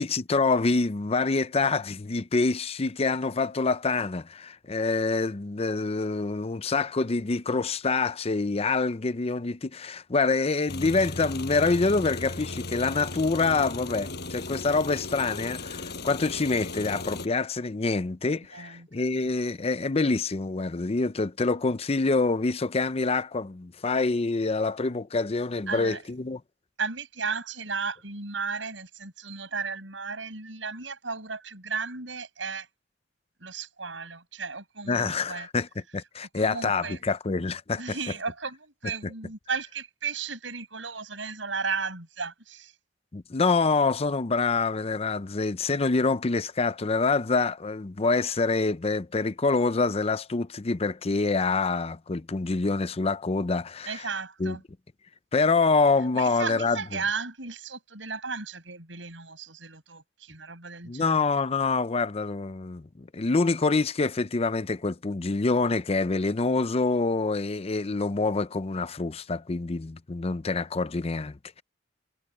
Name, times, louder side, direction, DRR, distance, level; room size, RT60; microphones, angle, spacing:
voice 1, 0.0-26.4 34.9-35.7 35.9-37.8 43.1-54.0 54.4-54.6 55.3-57.0 60.9-71.6, left 3 dB, 35° left, 0.6 m, -26 dB
sound 1, 10.7-17.3, left 2 dB, 60° left, 6.0 m, -36 dB
voice 2, 18.5-18.9 25.7-26.0 26.8-32.7 33.4-35.5 36.3-37.0 37.8-42.7 53.9-54.6 56.1-61.3, right 5 dB, 80° right, 7.1 m, -35 dB
head